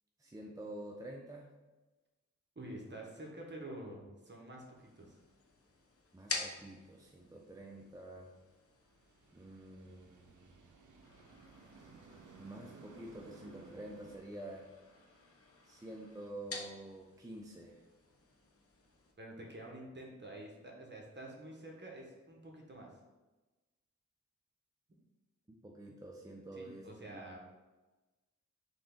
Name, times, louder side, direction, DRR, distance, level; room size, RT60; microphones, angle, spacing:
voice 1, 0.2-1.5 6.1-8.3 9.3-10.6 12.4-14.7 15.6-17.8 25.6-27.4, right 1 dB, 10° right, -1 dB, 0.5 m, -48 dB
voice 2, 2.5-5.2 19.2-22.9 26.5-27.4, right 1 dB, 35° right, -1 dB, 1.2 m, -48 dB
sound 1, 4.8-19.1, left 3 dB, 50° left, 0.7 m, -50 dB
sound 2, 8.9-14.2, right 4 dB, 90° right, 0.5 m, -57 dB
3.8 x 3.4 x 3.7 m, 1.2 s
wide cardioid pair, 60°, 30 cm